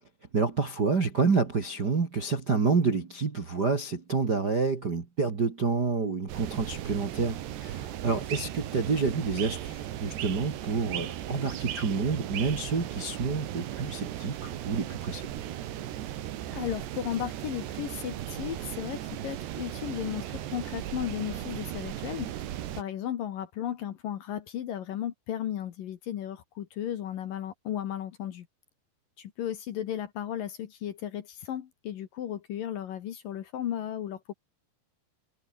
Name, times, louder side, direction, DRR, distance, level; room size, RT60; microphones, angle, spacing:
voice 1, 0.3-15.3, right 4 dB, 40° right, 1.5 m, -28 dB
sound 1, 6.3-22.8, right 12 dB, 75° right, 3.9 m, -37 dB
voice 2, 16.5-22.3 22.7-28.5 29.2-34.3, left 10 dB, 60° left, 2.7 m, -35 dB
omnidirectional pair, 5.1 m